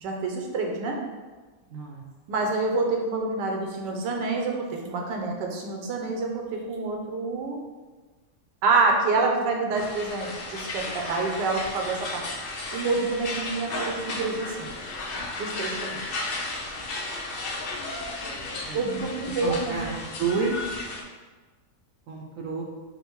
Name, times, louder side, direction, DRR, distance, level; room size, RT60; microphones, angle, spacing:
voice 1, 0.0-0.9 2.3-7.6 8.6-14.7 15.4-16.0 18.7-19.8, right 3 dB, 90° right, 1 dB, 1.4 m, -27 dB
voice 2, 1.7-2.0 18.6-18.8 19.4-20.7 22.1-22.6, right 4 dB, 70° right, 0 dB, 0.8 m, -30 dB
sound 1, 9.7-21.0, left 2 dB, 90° left, 0.5 m, -34 dB
5.4 x 2.1 x 4.5 m, 1.3 s
omnidirectional pair, 1.8 m